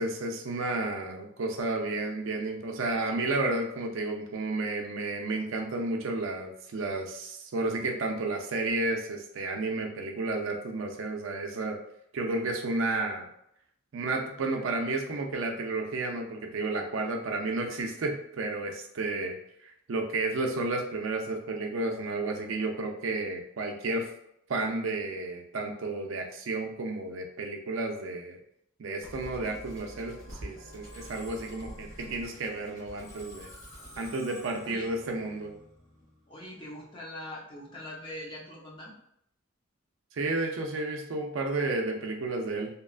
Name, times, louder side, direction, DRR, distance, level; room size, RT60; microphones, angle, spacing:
voice 1, 0.0-11.8 12.1-13.3 13.9-19.4 19.6-24.1 24.5-28.4 28.8-33.5 34.0-35.5 40.1-42.7, right 2 dB, 65° right, 2 dB, 0.4 m, -32 dB
Musical instrument, 29.0-36.3, equal, 90° left, 1.1 m, -47 dB
voice 2, 36.3-38.9, left 1 dB, 25° left, -5 dB, 0.7 m, -42 dB
2.9 x 2.3 x 2.3 m, 0.73 s
head